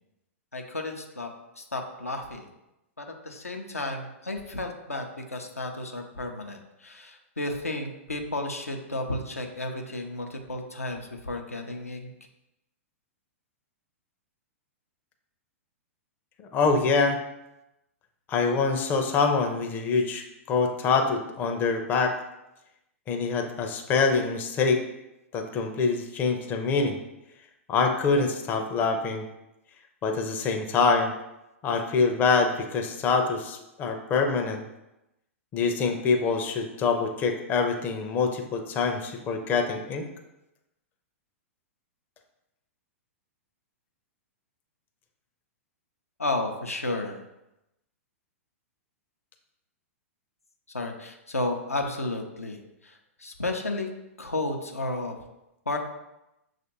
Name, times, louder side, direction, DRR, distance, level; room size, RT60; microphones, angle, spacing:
voice 1, 0.5-1.3 1.6-2.5 3.0-12.1 46.2-47.2 50.7-53.9 54.2-55.2 55.7-55.8, left 2 dB, 85° left, 3 dB, 0.5 m, -32 dB
voice 2, 16.5-17.2 18.3-22.1 23.1-24.8 25.3-27.0 27.7-29.2 30.0-31.1 31.6-34.6 35.5-40.1, left 4 dB, 25° left, 4 dB, 0.5 m, -25 dB
6.2 x 2.5 x 2.9 m, 0.92 s
figure-of-eight pair, 105°, 8 cm